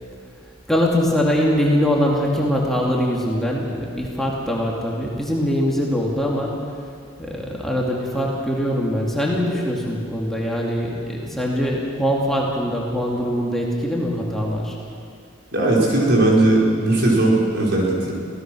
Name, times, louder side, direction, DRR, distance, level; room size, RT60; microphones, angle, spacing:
voice 1, 0.7-6.6 7.2-14.8, equal, ahead, -3 dB, 2.4 m, -22 dB
voice 2, 15.5-18.1, right 2 dB, 55° right, -3 dB, 4.8 m, -18 dB
25.0 x 17.0 x 6.3 m, 2.3 s
head